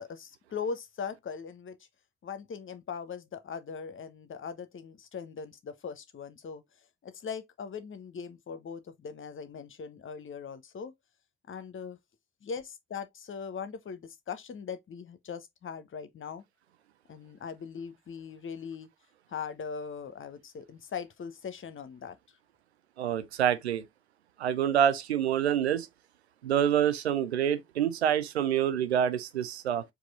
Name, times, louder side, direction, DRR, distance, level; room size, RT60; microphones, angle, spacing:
voice 1, 0.0-1.8 2.2-6.6 7.0-10.9 11.5-12.0 12.4-16.4 17.1-18.9 19.3-22.2, left 6 dB, 40° left, 0.9 m, -40 dB
voice 2, 23.0-23.8 24.4-25.9 26.4-29.8, right 9 dB, 85° right, 0.5 m, -27 dB
4.6 x 2.6 x 4.0 m
figure-of-eight pair, 45°, 32 cm